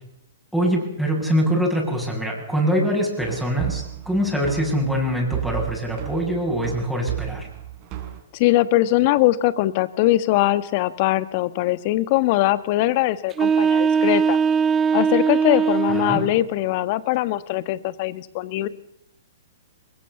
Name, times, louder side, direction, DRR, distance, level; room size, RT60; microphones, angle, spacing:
voice 1, 0.5-7.5 15.9-16.2, equal, ahead, -1 dB, 8.0 m, -23 dB
sound 1, 3.2-8.2, right 14 dB, 35° right, 4.5 m, -34 dB
voice 2, 8.3-14.4 14.9-18.7, left 16 dB, 45° left, 15 dB, 1.4 m, -21 dB
sound 2, 13.3-16.3, right 6 dB, 20° right, 1.2 m, -20 dB
23.5 x 21.5 x 7.2 m, 0.75 s
hypercardioid pair, 120°, 0 cm